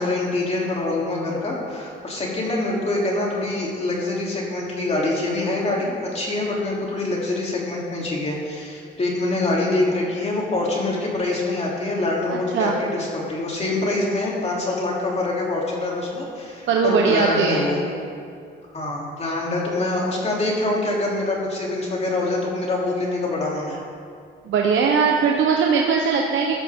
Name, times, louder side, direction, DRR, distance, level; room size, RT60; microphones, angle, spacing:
voice 1, 0.0-17.8 18.7-23.8, left 2 dB, 35° left, -4 dB, 3.4 m, -25 dB
voice 2, 12.3-12.8 16.7-17.7 24.5-26.5, right 5 dB, 75° right, 0 dB, 1.1 m, -20 dB
15.5 x 12.5 x 3.8 m, 2.4 s
cardioid pair, 90°, 20 cm